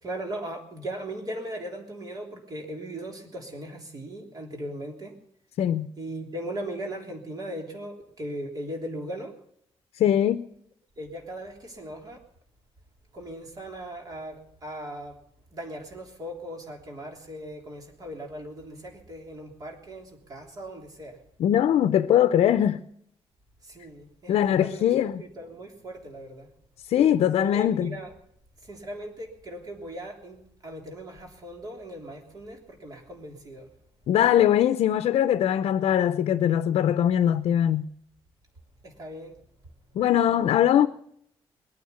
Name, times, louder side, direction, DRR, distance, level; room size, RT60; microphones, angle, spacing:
voice 1, 0.0-5.1 6.0-9.3 11.0-12.2 13.1-15.2 15.5-21.2 23.6-26.5 27.4-28.1 28.7-30.4 30.6-33.7 38.8-39.4, right 1 dB, 40° right, 3.3 m, -38 dB
voice 2, 5.6-5.9 10.0-10.5 21.4-22.8 24.3-25.2 26.9-28.0 34.1-37.9 39.9-40.9, left 10 dB, 75° left, 0.6 m, -21 dB
21.5 x 9.5 x 7.0 m
cardioid pair, 150°, 10 cm